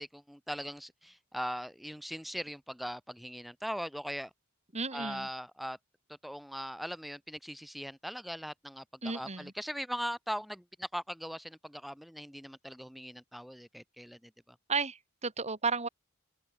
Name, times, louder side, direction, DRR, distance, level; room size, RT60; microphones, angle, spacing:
voice 1, 0.0-4.3 4.9-5.8 6.1-14.6, equal, ahead, 6.6 m, -40 dB
voice 2, 4.7-5.3 9.0-9.5 14.7-15.9, right 4 dB, 30° right, 4.3 m, -33 dB
open air
head